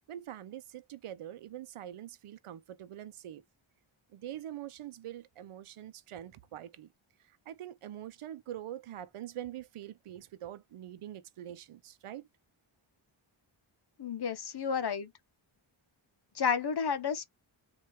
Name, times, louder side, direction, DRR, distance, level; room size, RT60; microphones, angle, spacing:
voice 1, 0.1-3.4 4.1-6.9 7.5-12.3, right 11 dB, 90° right, 0.7 m, -44 dB
voice 2, 14.0-15.1 16.3-17.2, left 6 dB, 50° left, 0.8 m, -31 dB
4.3 x 2.6 x 3.3 m
wide cardioid pair, 115°, 49 cm